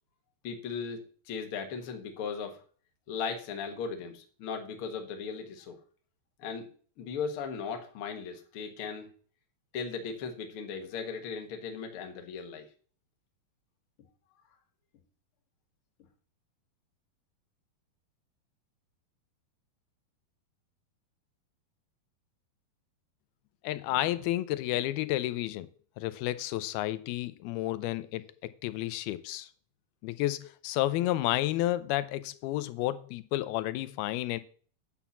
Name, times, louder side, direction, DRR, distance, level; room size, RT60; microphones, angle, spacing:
voice 1, 0.4-2.6 3.1-5.8 6.4-6.7 7.0-9.1 9.7-12.7, left 5 dB, 55° left, 4 dB, 1.5 m, -37 dB
voice 2, 23.6-25.7 26.0-29.5 30.0-34.4, left 15 dB, 85° left, 14 dB, 2.6 m, -31 dB
9.1 x 5.6 x 7.2 m, 0.43 s
omnidirectional pair, 4.4 m